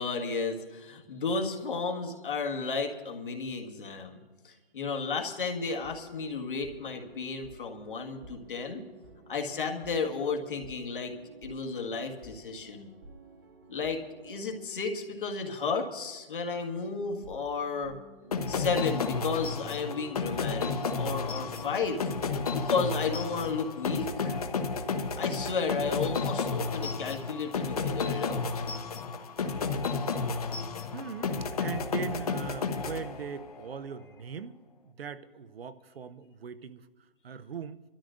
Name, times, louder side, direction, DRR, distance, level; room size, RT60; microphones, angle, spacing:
voice 1, 0.0-4.2 4.4-8.8 9.3-11.1 11.4-12.9 13.7-17.9 18.5-22.1 22.5-24.3 25.1-28.6, left 4 dB, 60° left, 2 dB, 1.8 m, -33 dB
sound 1, 5.6-15.8 16.0-16.2 17.0-24.2, right 3 dB, 20° right, 1.0 m, -51 dB
sound 2, 18.3-33.6, left 4 dB, 40° left, 0.8 m, -32 dB
voice 2, 30.9-36.9 37.2-37.8, right 6 dB, 75° right, 13 dB, 0.8 m, -40 dB
28.0 x 13.0 x 2.6 m, 1.3 s
hypercardioid pair, 175°, 30 cm